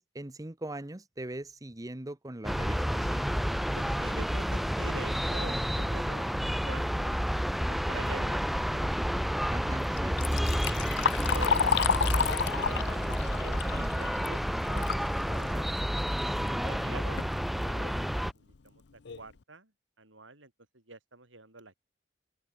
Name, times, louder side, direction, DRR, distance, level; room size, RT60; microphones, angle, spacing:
voice 1, 0.0-3.3 9.5-10.2 16.2-17.0, right 1 dB, 20° right, 1.0 m, -41 dB
sound 1, 2.4-18.3, equal, ahead, 0.7 m, -30 dB
voice 2, 3.7-7.2 7.9-8.4 9.9-10.0 11.3-14.4 14.7-14.9 15.2-15.8 16.6-18.8 19.2-19.7 20.0-21.8, right 3 dB, 85° right, 5.6 m, -46 dB
Liquid, 10.0-15.1 15.5-15.6 16.5-16.6 17.0-17.3 17.9-18.0 18.5-18.6 19.1-19.3, left 7 dB, 65° left, 0.6 m, -30 dB
open air
head